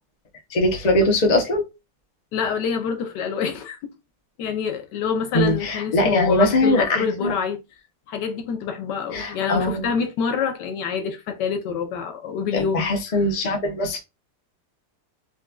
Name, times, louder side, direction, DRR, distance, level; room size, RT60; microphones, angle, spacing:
voice 1, 0.5-1.6 5.3-7.3 9.1-9.9 12.5-14.0, left 1 dB, 50° left, 0.5 m, -21 dB
voice 2, 2.3-3.9 4.4-7.6 8.1-13.2, left 6 dB, 75° left, 1.2 m, -27 dB
4.1 x 2.2 x 2.3 m
omnidirectional pair, 2.0 m